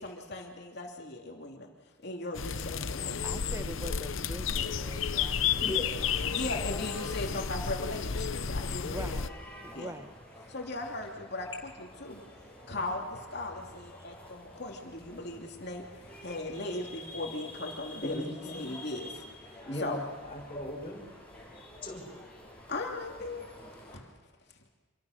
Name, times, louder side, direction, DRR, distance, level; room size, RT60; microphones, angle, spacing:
voice 1, 0.0-1.7 2.0-3.4 6.2-9.3 9.7-9.9 10.5-12.2 12.7-20.0 22.7-23.6 23.9-24.1, left 2 dB, 55° left, 0 dB, 2.9 m, -38 dB
sound 1, 2.3-9.3, left 7 dB, 80° left, 0.8 m, -32 dB
voice 2, 3.0-5.7 8.8-9.3 9.6-10.1, right 1 dB, 15° right, 10 dB, 1.0 m, -43 dB
voice 3, 5.6-6.1 18.0-18.6 19.6-20.0 20.3-21.0 21.8-22.0, equal, 25° left, -2 dB, 5.5 m, -37 dB
sound 2, 5.7-24.0, left 1 dB, 5° left, 7.6 m, -49 dB
27.5 x 24.5 x 6.6 m, 1.4 s
head